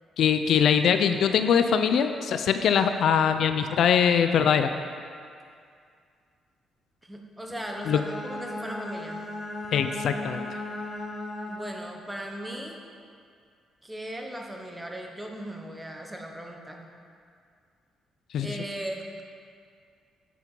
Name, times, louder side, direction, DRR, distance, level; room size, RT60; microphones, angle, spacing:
voice 1, 0.2-4.7 7.9-8.0 9.7-10.5 18.3-18.5, left 7 dB, 70° left, 9 dB, 0.3 m, -22 dB
voice 2, 7.0-9.2 11.5-12.8 13.8-16.9 18.4-19.2, right 1 dB, 10° right, 2 dB, 0.9 m, -38 dB
Bowed string instrument, 7.5-12.0, left 1 dB, 35° left, 0.7 m, -36 dB
8.2 x 4.5 x 5.2 m, 2.3 s
cardioid pair, 90°, 0 cm